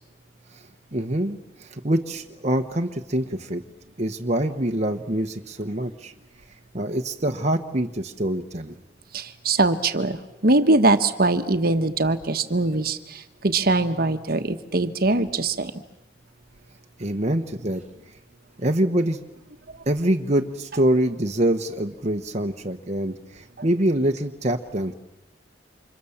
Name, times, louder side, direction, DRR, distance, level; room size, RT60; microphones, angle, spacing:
voice 1, 0.9-3.6 4.0-6.1 6.7-8.8 17.0-17.8 18.6-19.2 19.9-24.9, right 1 dB, 35° right, 4 dB, 1.2 m, -25 dB
voice 2, 9.1-15.7 23.6-23.7, right 2 dB, 55° right, 9 dB, 1.3 m, -22 dB
29.0 x 26.5 x 7.3 m, 0.95 s
head